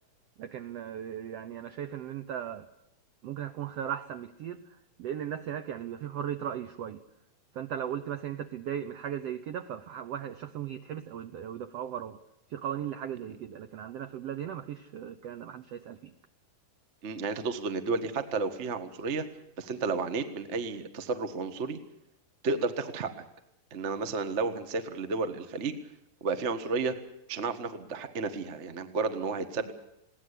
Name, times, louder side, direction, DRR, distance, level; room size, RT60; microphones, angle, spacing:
voice 1, 0.4-2.7 3.2-4.6 5.0-7.0 7.5-12.2 12.5-16.1, right 9 dB, 80° right, 10 dB, 1.4 m, -37 dB
voice 2, 17.0-19.2 19.6-21.8 22.4-23.1 23.7-25.8 26.2-26.9 27.3-29.7, right 4 dB, 55° right, 9 dB, 0.7 m, -32 dB
21.5 x 17.5 x 8.3 m, 0.82 s
omnidirectional pair, 4.0 m